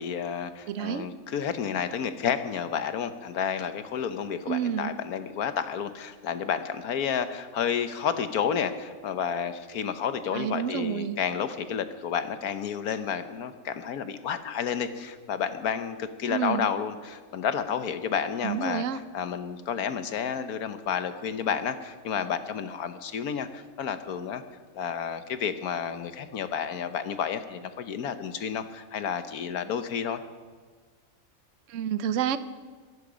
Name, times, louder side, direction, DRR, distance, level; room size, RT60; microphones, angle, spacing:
voice 1, 0.0-18.8 19.1-24.4 24.7-30.2, left 7 dB, 90° left, 10 dB, 1.4 m, -31 dB
voice 2, 0.7-1.1 4.5-4.9 10.3-11.2 16.3-16.7 18.4-19.0 31.7-32.4, right 9 dB, 65° right, 13 dB, 1.0 m, -29 dB
23.0 x 12.0 x 5.1 m, 1.5 s
omnidirectional pair, 1.5 m